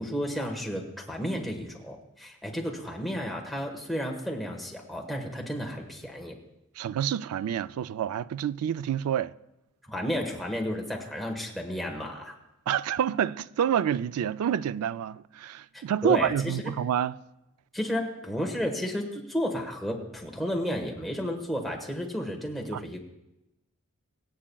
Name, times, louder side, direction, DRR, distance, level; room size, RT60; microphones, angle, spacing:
voice 1, 0.0-6.4 9.9-12.3 15.7-16.6 17.7-23.0, equal, ahead, 1.2 m, -32 dB
voice 2, 6.8-9.3 12.7-17.2 22.7-23.0, right 9 dB, 80° right, 0.3 m, -28 dB
25.0 x 8.6 x 2.3 m
head